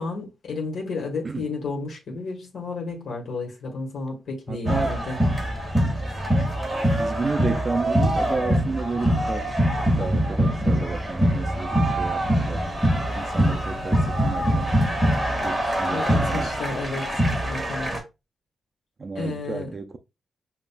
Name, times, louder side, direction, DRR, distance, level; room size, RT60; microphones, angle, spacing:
voice 1, 0.0-5.2 15.9-17.1 17.4-17.9 19.1-19.7, left 3 dB, 75° left, 1.3 m, -32 dB
voice 2, 4.5-4.9 7.0-12.7 13.1-14.8 15.4-16.5 19.0-20.0, right 4 dB, 30° right, 0.4 m, -32 dB
sound 1, 4.7-18.0, equal, 10° right, 1.7 m, -23 dB
7.1 x 2.5 x 2.2 m
wide cardioid pair, 140°, 0 cm